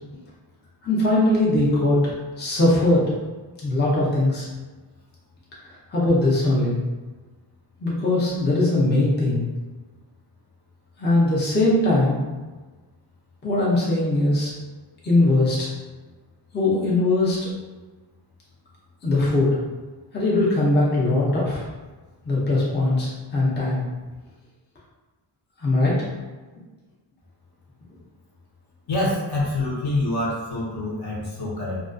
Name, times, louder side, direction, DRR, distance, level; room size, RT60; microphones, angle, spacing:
voice 1, 0.8-3.1 3.6-4.5 5.7-6.8 7.8-9.5 11.0-12.2 13.4-14.5 15.0-15.7 16.5-17.5 19.0-19.6 20.1-21.6 22.2-23.8 25.6-26.0, left 2 dB, 25° left, -6 dB, 0.5 m, -20 dB
voice 2, 28.9-31.8, left 2 dB, 55° left, -5 dB, 0.8 m, -26 dB
2.2 x 2.2 x 2.4 m, 1.3 s
wide cardioid pair, 115°, 47 cm